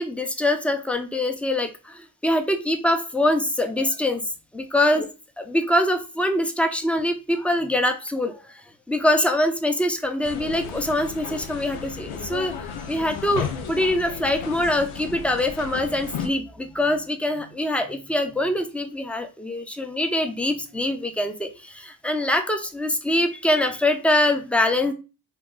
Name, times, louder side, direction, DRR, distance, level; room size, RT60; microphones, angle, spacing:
voice 1, 0.0-5.1 5.4-12.5 12.9-24.9, left 1 dB, 5° left, 6 dB, 0.6 m, -24 dB
sound 1, 10.2-16.3, left 7 dB, 80° left, 0.7 m, -34 dB
2.9 x 2.3 x 3.7 m, 0.31 s
supercardioid pair, 45°, 48 cm